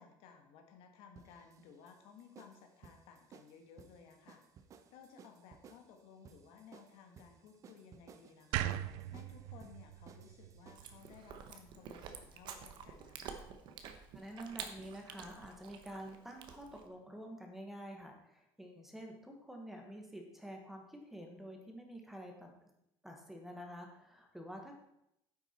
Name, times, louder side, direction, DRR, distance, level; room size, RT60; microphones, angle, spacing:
voice 1, 0.0-4.4 4.9-13.4, left 6 dB, 70° left, 4 dB, 1.7 m, -58 dB
sound 1, 1.1-11.0, right 6 dB, 30° right, 0.7 m, -60 dB
sound 2, 8.5-11.7, right 13 dB, 85° right, 0.5 m, -40 dB
Chewing mastication, 10.7-16.9, right 7 dB, 50° right, 1.0 m, -49 dB
voice 2, 14.1-22.5 23.0-24.8, equal, 5° right, 2 dB, 1.3 m, -48 dB
9.6 x 8.1 x 4.4 m, 0.81 s
cardioid pair, 170°, 10 cm